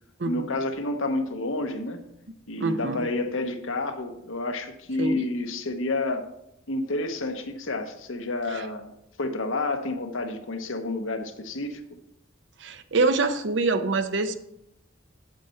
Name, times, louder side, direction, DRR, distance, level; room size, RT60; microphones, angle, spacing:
voice 1, 0.2-2.0 2.5-6.3 6.7-11.8, left 2 dB, 80° left, 6 dB, 1.0 m, -30 dB
voice 2, 2.6-3.1 5.0-5.2 8.5-8.6 12.6-14.3, right 3 dB, 60° right, 9 dB, 0.7 m, -25 dB
8.1 x 7.7 x 4.4 m, 0.80 s
head